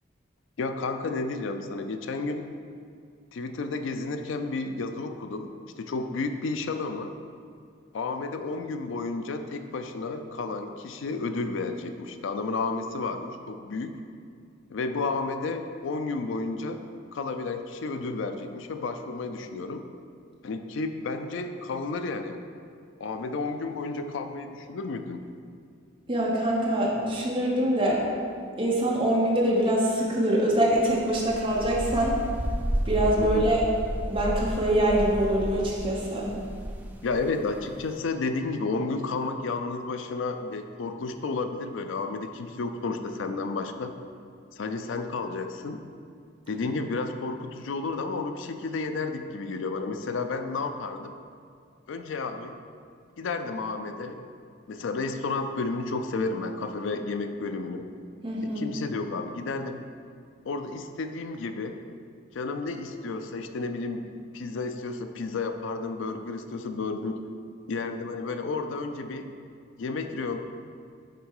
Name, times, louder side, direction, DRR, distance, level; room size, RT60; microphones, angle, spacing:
voice 1, 0.6-2.5 3.3-7.1 7.9-13.9 14.7-16.8 17.1-19.9 20.4-22.4 23.0-25.3 33.2-33.5 37.0-43.9 44.5-45.8 46.5-51.1 51.9-52.6 53.2-54.2 54.7-57.8 58.4-59.8 60.4-61.8 62.3-67.2 67.7-69.3 69.8-70.4, left 3 dB, 75° left, 7 dB, 0.4 m, -32 dB
voice 2, 26.1-28.0 28.6-32.1 32.8-33.6 34.1-36.3 58.2-58.6, right 1 dB, 25° right, -4 dB, 1.1 m, -24 dB
Ambience on farm, 30.6-38.0, equal, 10° right, 0.4 m, -33 dB
6.6 x 4.4 x 4.8 m, 2.3 s
head